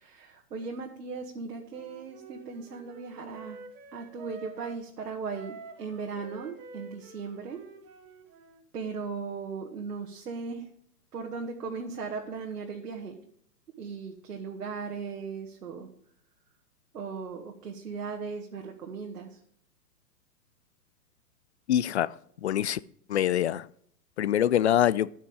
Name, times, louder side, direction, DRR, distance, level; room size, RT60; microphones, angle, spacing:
voice 1, 0.0-3.6 3.9-7.6 8.7-10.7 11.1-13.2 13.8-15.9 16.9-19.4, right 5 dB, 70° right, 1.9 m, -37 dB
Wind instrument woodwind instrument, 1.7-4.8 5.3-8.6, right 3 dB, 35° right, 2.2 m, -48 dB
voice 2, 21.7-22.1 22.4-22.8 23.1-23.7 24.2-25.1, left 11 dB, 45° left, 0.5 m, -24 dB
12.0 x 8.6 x 5.0 m
figure-of-eight pair, 115°, 49 cm